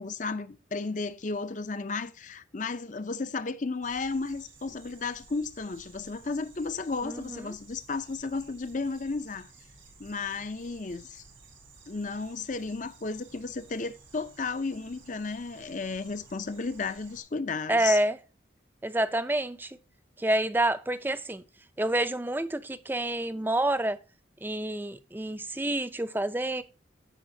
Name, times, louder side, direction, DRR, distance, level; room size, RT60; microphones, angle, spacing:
voice 1, 0.0-9.5 10.0-11.2 11.9-18.0, left 4 dB, 40° left, 0.6 m, -34 dB
sound 1, 3.8-17.2, right 3 dB, 90° right, 3.6 m, -55 dB
voice 2, 7.0-7.5 17.7-18.2 18.8-19.8 20.2-21.4 21.8-24.0 24.4-26.6, right 1 dB, 10° right, 0.5 m, -28 dB
15.0 x 5.0 x 2.7 m
head